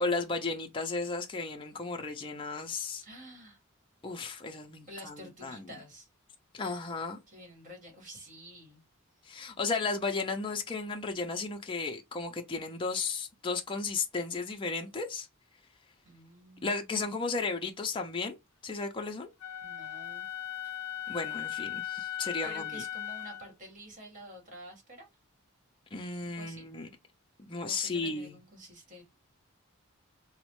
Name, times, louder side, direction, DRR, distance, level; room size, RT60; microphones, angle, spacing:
voice 1, 0.0-3.0 4.0-5.6 6.5-7.2 9.3-15.3 16.6-18.4 18.6-19.3 21.1-22.8 25.9-26.9 27.4-28.4, left 4 dB, 25° left, 0.4 m, -34 dB
voice 2, 3.0-3.6 4.9-6.1 7.3-8.8 16.0-17.0 19.6-20.3 22.4-25.1 26.2-26.7 27.7-29.0, equal, 40° right, 1.6 m, -49 dB
Wind instrument woodwind instrument, 19.4-23.5, left 10 dB, 80° left, 0.4 m, -38 dB
4.0 x 2.1 x 3.0 m
head